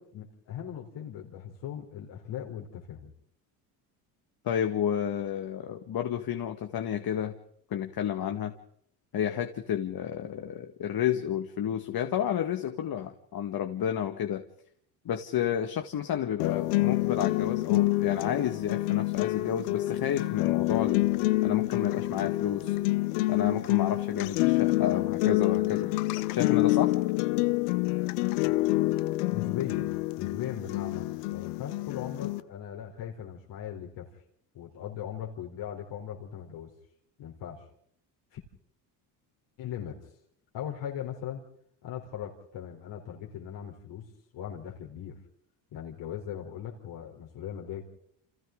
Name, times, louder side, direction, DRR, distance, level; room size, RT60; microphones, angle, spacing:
voice 1, 0.0-3.1 29.3-29.9 30.2-34.1 34.5-36.7 37.2-37.6 38.3-38.4 39.6-40.1 40.5-41.4 41.8-44.1 44.3-45.2 45.7-47.8, left 9 dB, 65° left, -1 dB, 4.0 m, -39 dB
voice 2, 4.4-7.3 7.7-8.5 9.1-14.4 15.1-21.1 21.4-22.7 23.3-25.9 26.3-26.9, left 9 dB, 50° left, 6 dB, 1.9 m, -31 dB
sound 1, 16.4-32.4, left 19 dB, 90° left, 1.0 m, -27 dB
29.5 x 27.5 x 3.9 m, 0.68 s
supercardioid pair, 80°, 46 cm